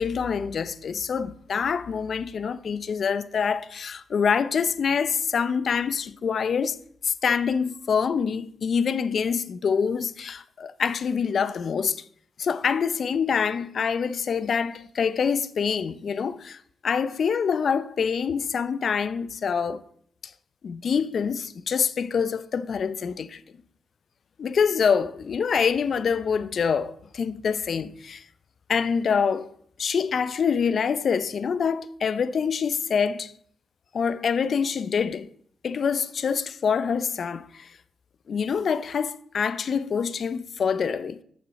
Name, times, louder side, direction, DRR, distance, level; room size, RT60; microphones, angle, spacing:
voice 1, 0.0-6.8 7.0-12.0 12.4-19.8 20.6-23.4 24.4-28.2 28.7-29.5 29.8-33.3 33.9-35.3 35.6-37.7 38.3-41.2, left 6 dB, 60° left, 0.5 m, -25 dB
8.4 x 7.0 x 5.7 m
cardioid pair, 60°, 0 cm